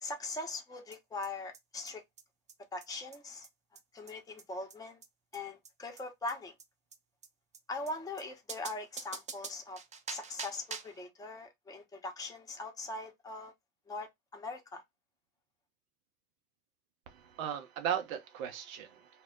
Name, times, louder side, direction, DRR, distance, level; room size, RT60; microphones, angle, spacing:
voice 1, 0.0-2.0 2.7-3.5 3.9-5.0 5.3-6.5 7.7-9.8 10.1-13.5 13.9-14.8, left 2 dB, 10° left, 0.7 m, -41 dB
sound 1, 0.9-1.0 1.2-1.3 1.5-1.6 1.9-2.0 2.2-2.3 2.5-2.6 2.8-2.9 3.1-3.2 3.4-3.5 3.8-3.9 4.1-4.2 4.4-4.5 4.7-4.8 5.0-5.1 5.3-5.4 5.7-5.8 6.0-6.1 6.3-6.4 6.6-6.7 6.9-7.0 7.2-7.3 7.5-7.6 7.9-8.0 8.2-8.3 8.5-11.0, right 5 dB, 20° right, 0.3 m, -44 dB
voice 2, 17.1-19.2, right 9 dB, 80° right, 0.7 m, -37 dB
2.2 x 2.0 x 3.5 m
hypercardioid pair, 60°, 42 cm